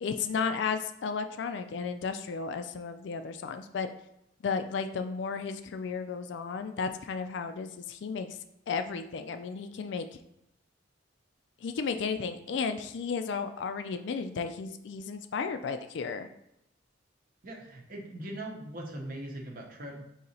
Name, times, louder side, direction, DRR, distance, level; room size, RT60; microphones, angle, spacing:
voice 1, 0.0-3.9 4.4-8.4 8.7-10.1 11.6-16.3, left 5 dB, 60° left, 9 dB, 0.3 m, -33 dB
voice 2, 17.4-20.0, right 1 dB, 45° right, 0 dB, 0.8 m, -40 dB
3.9 x 2.8 x 4.2 m, 0.82 s
head